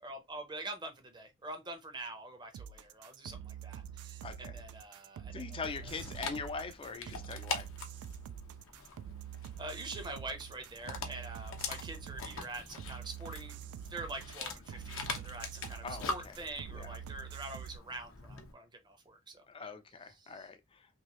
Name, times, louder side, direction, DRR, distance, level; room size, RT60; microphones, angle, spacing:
voice 1, 0.0-5.4 9.6-13.6 13.8-19.7 20.1-20.5, right 2 dB, 20° right, 0.6 m, -45 dB
sound 1, 2.5-17.8, right 9 dB, 90° right, 0.3 m, -46 dB
voice 2, 4.2-4.6 5.3-7.7 15.8-16.3 16.7-17.0 19.5-20.9, left 4 dB, 25° left, 0.4 m, -42 dB
Dog, 5.6-18.5, left 4 dB, 60° left, 0.7 m, -44 dB
3.0 x 2.7 x 2.9 m
head